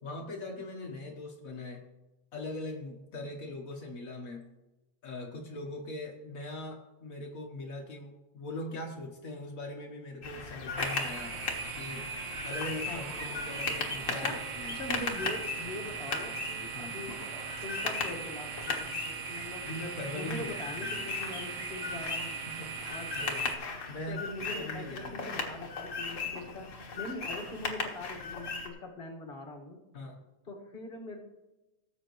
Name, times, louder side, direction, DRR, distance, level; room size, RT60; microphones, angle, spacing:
voice 1, 0.0-1.8 2.3-4.4 5.0-11.3 11.7-12.1 12.4-14.8 16.7-16.9 19.7-21.1 22.5-23.4 23.9-24.2 24.5-25.3 29.9-30.2, left 1 dB, 80° left, 0 dB, 0.7 m, -41 dB
sound 1, 10.2-28.7, left 4 dB, 45° left, 1.0 m, -37 dB
sound 2, 10.8-23.5, right 6 dB, 75° right, 1.1 m, -40 dB
voice 2, 12.9-13.5 14.2-14.4 14.7-17.2 17.6-19.7 20.1-22.3 22.9-23.1 24.1-26.7 26.9-29.8 30.4-31.2, left 2 dB, 30° left, 0 dB, 1.2 m, -42 dB
18.0 x 8.0 x 3.1 m, 1.0 s
omnidirectional pair, 3.3 m